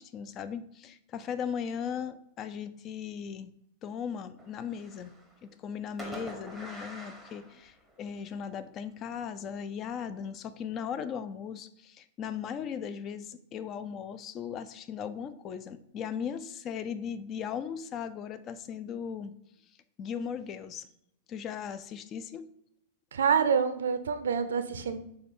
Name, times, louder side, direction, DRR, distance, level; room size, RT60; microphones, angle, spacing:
voice 1, 0.0-3.5 3.8-5.1 5.4-19.3 20.0-20.9 21.3-22.5, left 7 dB, 35° left, 13 dB, 0.4 m, -38 dB
Fireworks, 4.4-5.4 6.0-8.2, right 1 dB, ahead, 1.0 m, -45 dB
voice 2, 23.1-25.0, right 6 dB, 80° right, 10 dB, 0.4 m, -27 dB
6.5 x 2.3 x 3.6 m, 0.76 s
hypercardioid pair, 115°, 0 cm